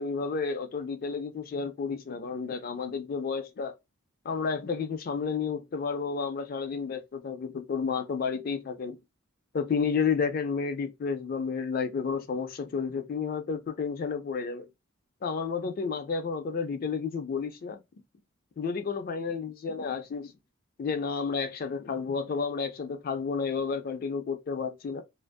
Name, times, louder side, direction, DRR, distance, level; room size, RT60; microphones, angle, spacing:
voice 1, 0.0-3.8 4.2-9.0 9.5-14.7 15.2-17.8 18.6-20.3 20.8-25.0, left 5 dB, 45° left, 0.3 m, -31 dB
2.5 x 2.3 x 2.2 m
head